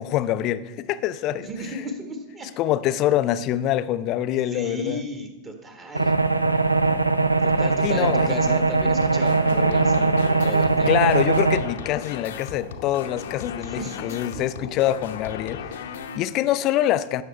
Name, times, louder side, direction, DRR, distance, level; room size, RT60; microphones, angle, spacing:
voice 1, 0.0-1.8 2.6-5.0 7.8-8.6 10.9-17.2, left 12 dB, 40° left, 14 dB, 0.4 m, -25 dB
voice 2, 1.4-2.5 4.5-6.2 7.4-10.1 10.4-10.9 13.6-14.7, right 1 dB, 25° right, 5 dB, 1.5 m, -34 dB
sound 1, 5.9-11.6, right 3 dB, 85° right, 0.5 m, -20 dB
sound 2, 8.8-16.2, left 6 dB, 60° left, 0.8 m, -36 dB
16.5 x 6.5 x 3.3 m, 1.1 s
figure-of-eight pair, 90°, 0 cm